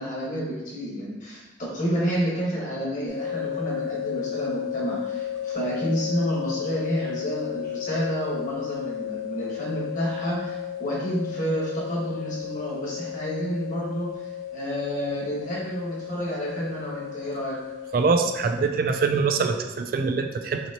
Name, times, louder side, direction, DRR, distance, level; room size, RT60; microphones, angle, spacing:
voice 1, 0.0-17.5, equal, 40° left, -5 dB, 1.4 m, -29 dB
sound 1, 3.1-18.6, left 10 dB, 15° right, 1.0 m, -34 dB
voice 2, 17.9-20.6, right 4 dB, 50° right, 6 dB, 0.3 m, -23 dB
5.8 x 3.0 x 2.9 m, 1.1 s
head